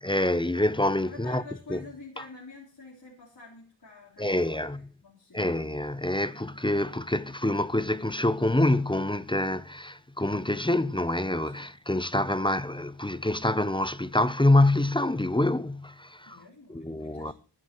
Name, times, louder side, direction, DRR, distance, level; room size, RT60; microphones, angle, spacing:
voice 1, 0.0-1.4 1.7-1.8 4.2-4.8 5.3-16.4 16.7-17.3, left 1 dB, 10° left, 0.6 m, -26 dB
voice 2, 1.1-5.5 11.4-11.7 16.3-17.3, left 4 dB, 55° left, 3.9 m, -48 dB
21.5 x 10.5 x 3.0 m
wide cardioid pair, 70°, 45 cm